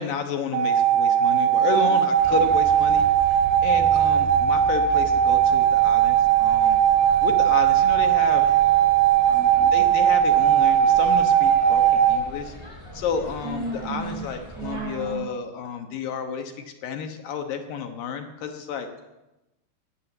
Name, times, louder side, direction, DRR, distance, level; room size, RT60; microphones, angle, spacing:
voice 1, 0.0-6.8 7.2-8.4 9.7-18.9, left 6 dB, 70° left, 5 dB, 2.7 m, -31 dB
sound 1, 0.5-12.2, right 10 dB, 70° right, 4.2 m, -19 dB
sound 2, 2.2-15.1, right 1 dB, 5° left, 4.5 m, -39 dB
voice 2, 9.3-9.7 13.4-14.2 14.6-15.2, right 4 dB, 85° right, 1 dB, 4.8 m, -34 dB
16.0 x 9.1 x 7.9 m, 0.98 s
omnidirectional pair, 4.6 m